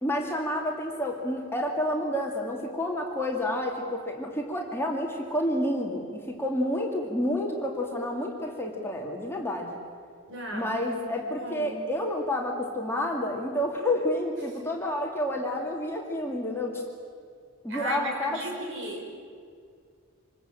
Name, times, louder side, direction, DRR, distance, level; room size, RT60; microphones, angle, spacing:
voice 1, 0.0-9.8 10.5-16.8 17.6-18.5, left 1 dB, 10° left, 0 dB, 2.4 m, -29 dB
voice 2, 10.3-10.7 11.4-11.8 17.7-19.0, right 1 dB, 55° right, 0 dB, 5.8 m, -35 dB
26.5 x 20.5 x 9.1 m, 2.2 s
head